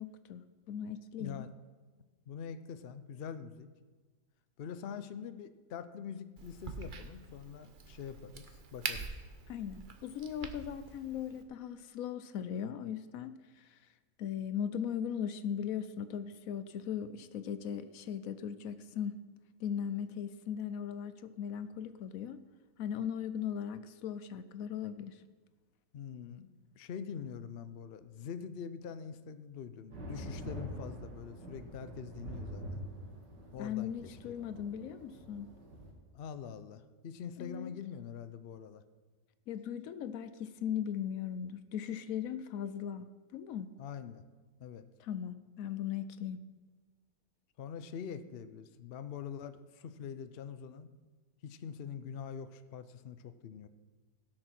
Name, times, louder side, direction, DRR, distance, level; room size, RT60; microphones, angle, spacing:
voice 1, 0.0-1.5 9.5-13.8 14.2-19.2 19.6-22.4 22.8-25.2 33.6-35.5 37.4-37.7 39.5-43.1 43.3-43.7 45.0-46.4, left 8 dB, 65° left, 13 dB, 0.9 m, -38 dB
voice 2, 1.2-1.5 2.3-3.7 4.6-9.2 25.9-26.5 26.8-32.8 33.5-34.3 36.1-38.8 43.8-44.2 44.6-44.8 47.6-50.9 51.4-53.7, left 7 dB, 80° left, 11 dB, 0.5 m, -44 dB
Crack, 6.4-11.4, right 4 dB, 40° right, 0.7 m, -44 dB
sound 1, 29.9-35.9, right 1 dB, 80° right, 2.6 m, -45 dB
16.0 x 6.6 x 5.9 m, 1.3 s
omnidirectional pair, 1.8 m